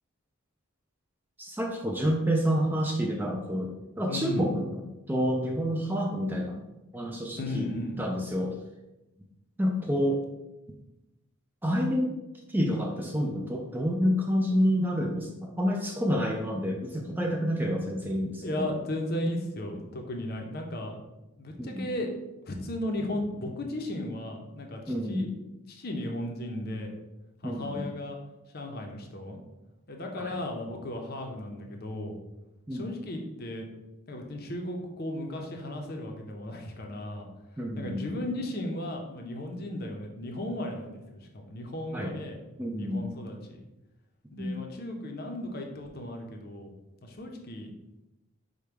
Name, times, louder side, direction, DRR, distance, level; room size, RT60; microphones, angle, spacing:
voice 1, 1.4-4.8 5.1-6.7 6.9-7.7 8.0-8.6 9.6-10.2 11.6-12.1 12.5-18.7 21.6-21.9 24.9-25.3 27.4-27.9 30.2-30.4 32.7-32.8 37.6-38.0 41.9-42.1 42.6-43.0 44.4-44.6, equal, 10° right, 1 dB, 0.3 m, -28 dB
voice 2, 4.1-4.5 7.3-8.0 18.4-20.9 21.4-22.1 22.4-25.3 25.7-26.9 27.4-28.2 28.5-29.4 29.9-32.1 32.7-33.7 34.1-37.3 37.8-42.4 42.7-43.6 44.3-46.7 47.0-47.7, left 1 dB, 45° left, 2 dB, 0.7 m, -35 dB
5.1 x 2.2 x 4.5 m, 0.97 s
head